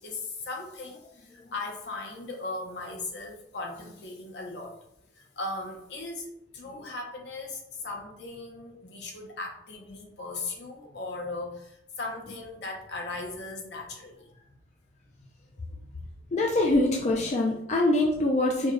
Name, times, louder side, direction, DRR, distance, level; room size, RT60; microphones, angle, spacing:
voice 1, 0.0-4.8 5.1-14.3 15.2-15.3 15.8-16.1, left 3 dB, 70° left, 1 dB, 0.9 m, -38 dB
voice 2, 16.3-18.7, left 2 dB, 40° left, -1 dB, 0.5 m, -24 dB
4.4 x 2.3 x 3.1 m, 0.80 s
head